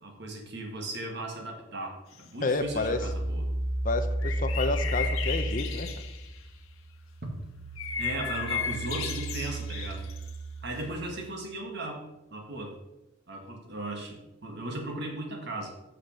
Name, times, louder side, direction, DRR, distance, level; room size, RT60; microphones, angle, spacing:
voice 1, 0.0-3.5 8.0-10.0 10.6-12.0 12.3-12.8 13.3-15.7, right 2 dB, 55° right, 2 dB, 1.8 m, -37 dB
sound 1, 2.1-2.6 4.2-6.4 7.8-10.4, left 8 dB, 85° left, 1.2 m, -35 dB
voice 2, 2.4-3.0 3.8-5.9, left 2 dB, 40° left, 8 dB, 0.7 m, -30 dB
sound 2, 2.6-6.5 6.9-11.4, right 1 dB, 75° right, 0.9 m, -33 dB
6.5 x 5.9 x 6.8 m, 0.93 s
head